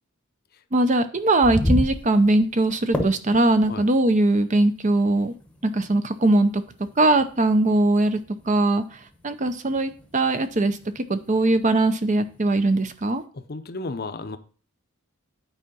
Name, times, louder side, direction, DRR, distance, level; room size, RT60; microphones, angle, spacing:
voice 1, 0.7-5.3 5.6-6.6 7.0-8.2 8.5-8.8 9.2-13.2, right 2 dB, 35° right, 10 dB, 0.6 m, -20 dB
sound 1, 1.2-13.2, left 1 dB, 5° left, 0.9 m, -34 dB
voice 2, 13.3-14.4, left 3 dB, 45° left, 10 dB, 0.6 m, -33 dB
9.0 x 4.6 x 5.4 m, 0.40 s
head